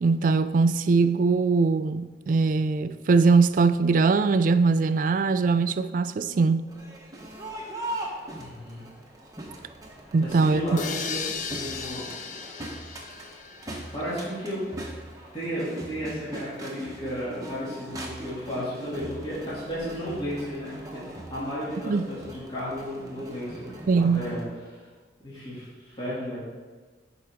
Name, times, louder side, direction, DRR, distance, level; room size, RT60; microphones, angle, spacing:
voice 1, 0.0-6.7 10.1-10.8 21.9-22.1 23.9-24.4, right 4 dB, 45° right, 0.3 m, -21 dB
Crowd, 6.7-24.4, right 1 dB, 20° right, 1.0 m, -41 dB
voice 2, 8.4-8.8 10.2-12.1 13.9-14.6 15.3-21.0 21.3-24.4 24.7-24.9 25.2-26.4, equal, 30° left, 2.5 m, -33 dB
sound 1, 10.8-14.5, left 6 dB, 45° left, 0.4 m, -36 dB
11.5 x 4.8 x 3.6 m
head